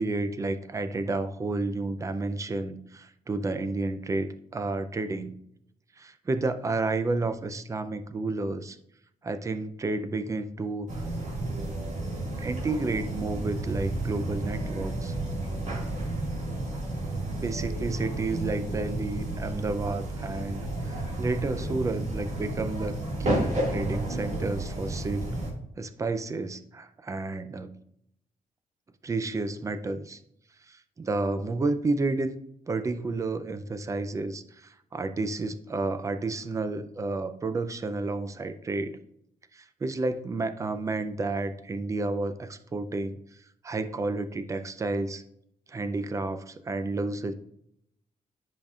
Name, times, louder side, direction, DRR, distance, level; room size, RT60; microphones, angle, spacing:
voice 1, 0.0-5.4 6.0-8.8 9.2-11.0 12.4-15.1 17.4-22.9 23.2-25.3 25.8-27.7 29.0-30.2 30.7-32.4 32.7-39.0 39.5-43.2 43.6-45.2 45.7-47.3, right 3 dB, 20° right, 11 dB, 0.4 m, -31 dB
sound 1, 10.9-25.5, right 1 dB, 55° right, 2.0 m, -32 dB
10.0 x 5.2 x 2.4 m, 0.75 s
cardioid pair, 150°, 15 cm